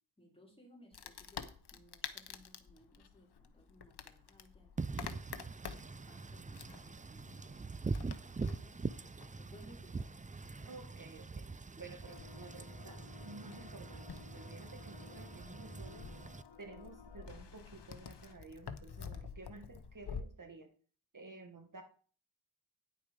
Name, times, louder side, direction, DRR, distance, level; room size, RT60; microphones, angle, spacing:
voice 1, 0.2-5.2 5.7-8.9 9.4-10.2, equal, 15° left, 0 dB, 3.5 m, -62 dB
Wood, 0.9-20.2, left 6 dB, 65° left, 1.0 m, -50 dB
Wind / Rain, 4.8-16.4, right 4 dB, 20° right, 0.4 m, -43 dB
voice 2, 10.7-11.5 11.8-14.1 14.3-16.1 16.6-20.7 21.1-21.8, right 3 dB, 50° right, 5 dB, 1.5 m, -52 dB
sound 1, 12.0-18.3, left 6 dB, 85° left, 1.3 m, -57 dB
10.0 x 6.5 x 5.0 m, 0.44 s
cardioid pair, 60°, 41 cm